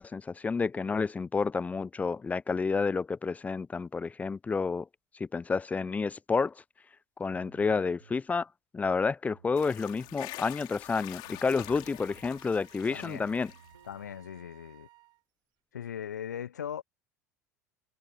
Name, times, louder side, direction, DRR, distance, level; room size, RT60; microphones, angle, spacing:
voice 1, 0.0-4.9 5.2-6.5 7.2-8.5 8.7-13.5, left 4 dB, 15° left, 0.5 m, -30 dB
sound 1, 7.3-8.2 9.2-10.3 11.3-12.2 13.2-14.2, right 6 dB, 80° right, 6.1 m, -59 dB
sound 2, 9.6-13.9, left 20 dB, 50° left, 3.8 m, -46 dB
Wind instrument woodwind instrument, 11.4-15.2, right 19 dB, 50° right, 5.4 m, -59 dB
voice 2, 12.9-13.3 13.8-14.9 15.7-16.8, left 9 dB, 75° left, 1.0 m, -39 dB
figure-of-eight pair, 75°, 9 cm